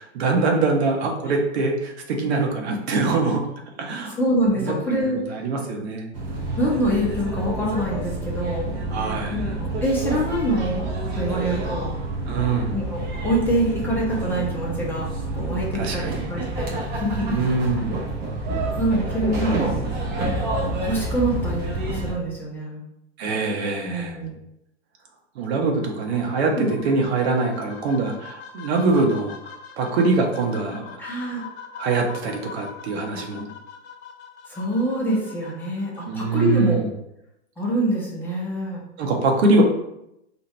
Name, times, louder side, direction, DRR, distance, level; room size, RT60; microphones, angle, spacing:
voice 1, 0.0-3.4 3.8-4.1 4.6-4.7 5.3-6.1 8.9-9.4 12.3-12.7 15.7-16.3 17.3-18.0 23.2-24.2 25.3-31.0 31.8-33.5 36.1-36.9 39.0-39.6, right 3 dB, 60° right, 1 dB, 1.0 m, -23 dB
voice 2, 4.1-5.4 6.6-8.8 9.3-10.9 11.1-11.9 12.7-17.4 18.8-19.9 20.8-22.8 23.8-24.4 26.5-26.8 31.0-31.4 34.5-36.9 37.6-38.8, right 1 dB, 5° left, -5 dB, 0.8 m, -25 dB
sound 1, 6.1-22.1, right 2 dB, 25° right, 0.8 m, -28 dB
sound 2, 25.6-36.6, left 6 dB, 60° left, 0.9 m, -42 dB
2.7 x 2.6 x 4.2 m, 0.82 s
hypercardioid pair, 130°, 36 cm